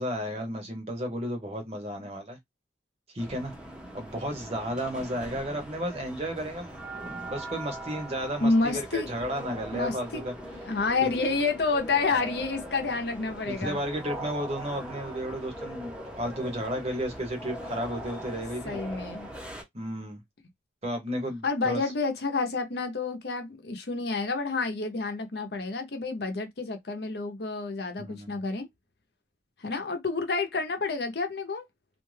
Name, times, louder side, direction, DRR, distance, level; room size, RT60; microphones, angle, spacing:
voice 1, 0.0-2.4 3.1-3.5 3.9-10.3 11.0-11.1 12.2-12.4 13.5-18.8 19.7-20.2 20.8-21.8 28.0-28.4, equal, 35° right, 0.8 m, -33 dB
sound 1, 3.2-19.6, right 1 dB, 5° right, 0.6 m, -41 dB
voice 2, 8.4-9.1 9.7-10.2 10.6-13.8 18.6-19.3 21.4-28.7 29.6-31.7, left 3 dB, 65° left, 0.7 m, -29 dB
2.5 x 2.2 x 3.2 m
head